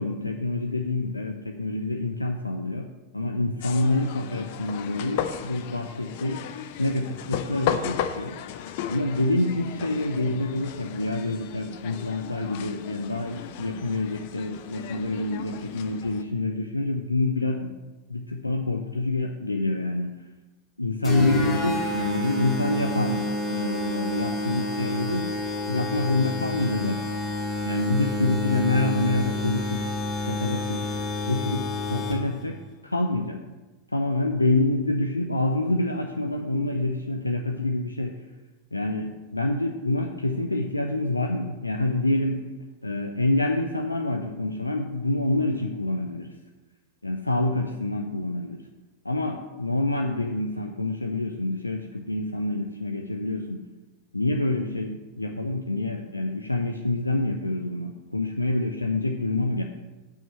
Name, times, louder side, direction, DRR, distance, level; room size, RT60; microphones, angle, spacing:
voice 1, 0.0-2.9 3.1-6.4 6.8-8.4 8.9-17.7 18.1-20.2 20.8-25.3 25.7-27.1 27.6-29.9 30.3-30.8 31.3-32.6 32.8-33.4 33.9-38.2 38.7-42.4 42.8-46.3 47.0-48.6 49.0-53.6 54.1-59.6, left 2 dB, 85° left, 4 dB, 0.6 m, -27 dB
sound 1, 3.6-16.2, left 9 dB, 50° left, 0.7 m, -35 dB
sound 2, 21.0-32.4, left 1 dB, 25° left, 3.3 m, -29 dB
9.1 x 5.7 x 6.7 m, 1.2 s
figure-of-eight pair, 90°, 0 cm